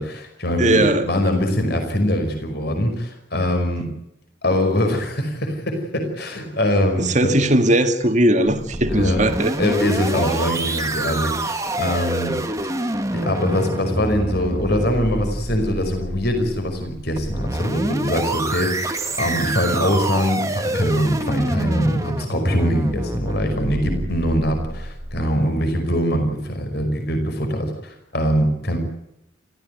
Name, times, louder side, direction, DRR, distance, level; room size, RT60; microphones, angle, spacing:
voice 1, 0.0-3.9 4.4-7.3 8.9-9.2 9.6-12.3 13.1-28.8, equal, 50° left, 5.5 m, -22 dB
voice 2, 0.6-1.1 7.0-9.5, right 1 dB, 35° right, 2.2 m, -18 dB
sound 1, 8.5-25.3, right 1 dB, 15° right, 1.7 m, -27 dB
29.5 x 15.0 x 9.5 m
head